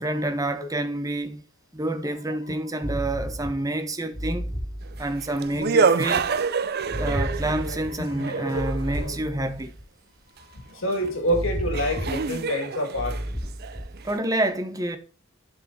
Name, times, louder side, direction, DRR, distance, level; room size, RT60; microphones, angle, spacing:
voice 1, 0.0-1.4 1.7-4.5 5.0-6.3 7.0-9.7 14.0-15.0, right 1 dB, 15° right, 0.9 m, -28 dB
sound 1, 2.8-3.7 4.1-5.4 6.9-8.0 8.5-9.8 11.3-12.4 12.9-14.1, equal, 15° left, 2.7 m, -32 dB
sound 2, 4.9-9.2 11.1-11.2 11.7-14.2, right 5 dB, 50° right, 0.5 m, -27 dB
voice 2, 8.0-8.6 9.0-9.1 10.5-13.2, equal, 80° left, 2.2 m, -28 dB
11.5 x 4.7 x 2.8 m
head